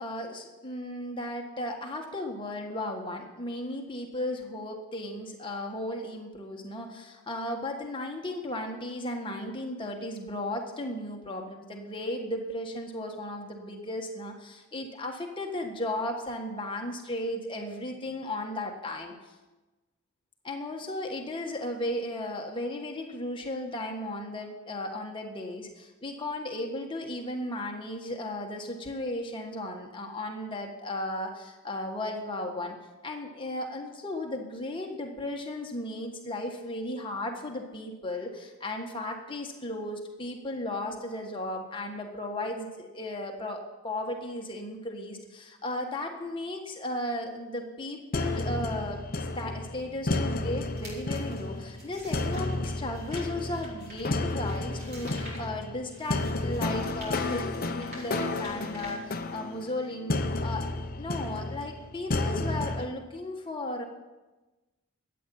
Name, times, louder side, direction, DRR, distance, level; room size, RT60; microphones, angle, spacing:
voice 1, 0.0-19.3 20.4-32.8 33.0-60.7 61.0-63.9, left 1 dB, 20° left, 1 dB, 1.5 m, -35 dB
sound 1, 48.1-62.9, left 2 dB, 40° left, 0.8 m, -32 dB
sound 2, 50.6-59.6, equal, 45° right, 4.6 m, -48 dB
13.0 x 8.8 x 7.1 m, 1.1 s
head